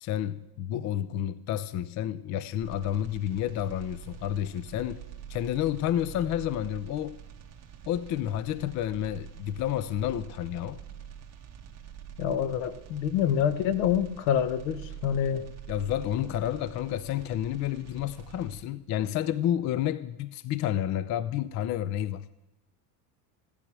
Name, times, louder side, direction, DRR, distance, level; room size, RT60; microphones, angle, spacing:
voice 1, 0.0-5.0 5.3-7.2 7.9-10.8 15.7-22.3, left 11 dB, 35° left, 0.4 m, -30 dB
sound 1, 2.6-18.6, right 9 dB, 30° right, 2.0 m, -46 dB
voice 2, 12.2-15.5, left 9 dB, 70° left, 1.2 m, -27 dB
15.0 x 10.5 x 6.1 m
cardioid pair, 140°, 50 cm